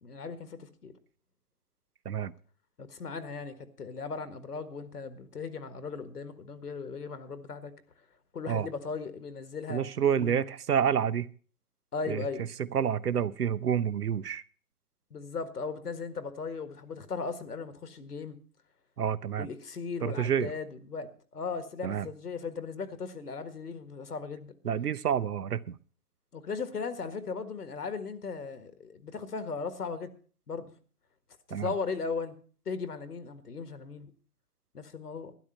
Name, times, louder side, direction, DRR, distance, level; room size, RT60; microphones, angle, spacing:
voice 1, 0.0-0.9 2.8-7.7 8.3-9.8 10.2-10.4 11.9-12.5 15.1-18.4 19.4-24.5 26.3-30.1 30.5-30.7 31.5-32.4 32.6-34.1 34.7-35.3, left 5 dB, 80° left, 1.7 m, -37 dB
voice 2, 9.7-11.3 12.1-12.2 12.7-14.4 19.0-19.5 20.0-20.5 21.8-22.1 24.6-25.8 31.5-31.7, right 8 dB, 75° right, 0.9 m, -28 dB
12.5 x 11.0 x 5.6 m
figure-of-eight pair, 130°, 46 cm